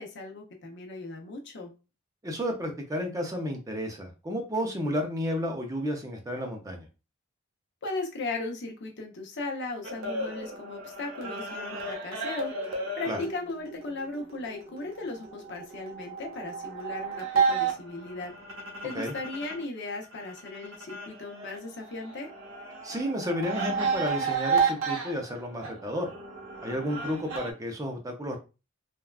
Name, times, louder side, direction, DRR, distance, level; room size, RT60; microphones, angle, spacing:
voice 1, 0.0-1.7 7.8-12.5 13.0-18.3 18.8-22.3, left 3 dB, 55° left, 2 dB, 0.7 m, -37 dB
voice 2, 2.2-6.9 13.1-13.2 18.9-19.1 22.8-26.1 26.6-28.4, equal, 15° right, 2 dB, 0.5 m, -32 dB
sound 1, 9.8-19.6 19.9-27.5, right 5 dB, 80° right, 0.8 m, -33 dB
3.4 x 2.2 x 2.3 m, 0.30 s
head